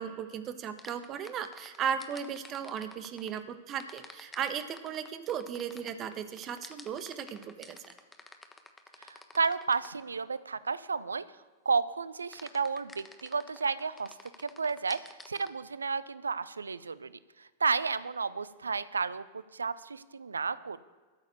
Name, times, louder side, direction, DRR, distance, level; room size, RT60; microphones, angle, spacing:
voice 1, 0.0-7.9, right 8 dB, 30° right, 10 dB, 1.2 m, -36 dB
sound 1, 0.8-3.4 3.8-10.0 12.3-15.5, left 3 dB, 10° left, 1.3 m, -50 dB
voice 2, 9.0-11.2 11.7-14.1 14.4-15.0 15.3-17.1 17.4-20.8, right 5 dB, 75° right, 17 dB, 0.5 m, -32 dB
13.5 x 7.1 x 8.1 m, 1.4 s
figure-of-eight pair, 90°, 0 cm